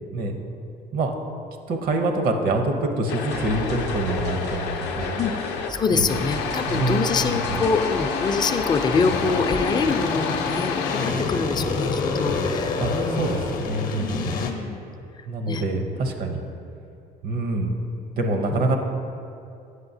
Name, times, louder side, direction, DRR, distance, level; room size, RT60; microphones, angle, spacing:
voice 1, 1.7-5.2 5.9-6.2 6.7-7.6 12.8-12.9 13.2-14.4 15.3-16.4 17.2-17.7 18.1-18.8, right 2 dB, 60° right, 4 dB, 0.7 m, -25 dB
sound 1, 3.1-5.7 6.1-11.1, left 5 dB, 90° left, 0.5 m, -29 dB
sound 2, 3.3-9.3, right 1 dB, 85° right, 1.1 m, -37 dB
voice 2, 5.7-13.3 14.0-14.8 15.2-15.6 18.5-18.6, left 4 dB, 25° left, 8 dB, 0.3 m, -25 dB
sound 3, 8.9-14.5, left 4 dB, 55° left, 0.7 m, -28 dB
7.9 x 5.4 x 2.7 m, 2.6 s
cardioid pair, 110°, 17 cm